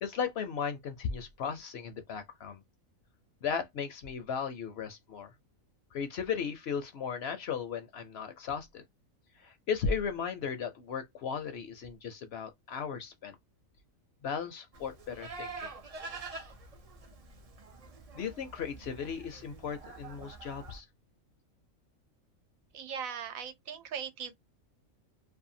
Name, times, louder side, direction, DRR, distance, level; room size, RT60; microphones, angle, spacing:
voice 1, 0.0-2.6 3.4-5.3 5.9-8.8 9.4-13.4 14.2-15.7 18.1-20.9, left 6 dB, 60° left, 0.7 m, -36 dB
Livestock farm animals working animals, 14.7-20.8, right 3 dB, 65° right, 0.3 m, -46 dB
voice 2, 22.7-24.3, right 7 dB, 90° right, 1.1 m, -39 dB
2.7 x 2.2 x 2.6 m
omnidirectional pair, 1.4 m